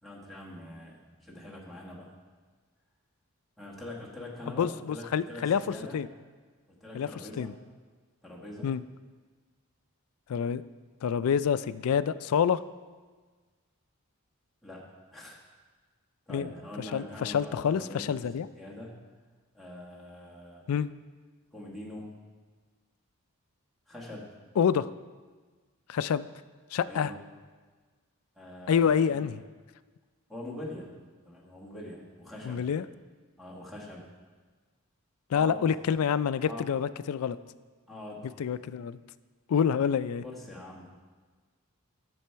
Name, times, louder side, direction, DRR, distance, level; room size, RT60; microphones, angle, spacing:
voice 1, 0.0-2.1 3.6-6.0 6.7-7.6 8.2-8.8 14.6-14.8 15.1-15.4 16.3-19.0 19.5-20.7 21.5-22.1 23.9-24.3 26.8-27.2 28.4-29.2 30.3-30.9 31.2-32.6 33.4-34.1 35.3-35.6 36.5-36.7 37.9-38.3 40.2-41.0, left 1 dB, ahead, -5 dB, 1.6 m, -43 dB
voice 2, 4.6-6.1 6.9-7.1 7.4-7.5 8.6-8.8 10.3-10.6 11.0-12.6 16.3-16.4 16.9-18.5 20.7-20.9 24.6-24.9 25.9-26.3 26.7-27.1 28.7-29.4 32.5-32.8 35.3-37.4 38.4-39.0 39.5-40.2, left 7 dB, 80° left, 15 dB, 0.3 m, -27 dB
10.5 x 7.0 x 4.5 m, 1.4 s
head